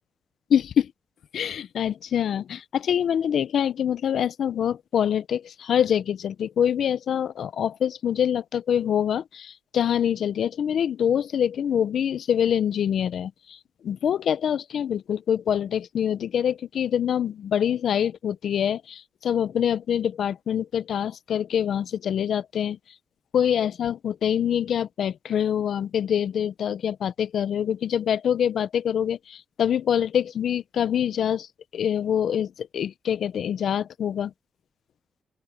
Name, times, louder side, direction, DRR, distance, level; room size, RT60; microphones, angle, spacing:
voice 1, 0.5-0.9 1.3-13.6 13.8-22.8 23.3-31.5 31.7-34.3, left 9 dB, 70° left, 0.9 m, -25 dB
open air
supercardioid pair, 50°, 0 cm